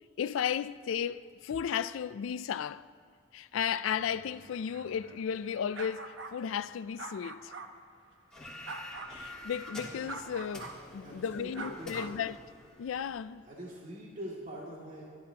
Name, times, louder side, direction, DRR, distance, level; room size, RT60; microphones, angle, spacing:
voice 1, 0.2-2.9 3.3-7.5 9.1-12.4 12.8-13.4, left 8 dB, 85° left, 0.4 m, -34 dB
sound 1, 3.9-7.7 8.6-9.2 10.1-10.8 11.5-12.2, right 3 dB, 65° right, 1.0 m, -45 dB
sound 2, 8.3-13.2, left 1 dB, 5° left, 2.7 m, -47 dB
voice 2, 11.0-12.2 13.5-15.0, equal, 45° right, 2.4 m, -44 dB
27.0 x 12.0 x 2.9 m
head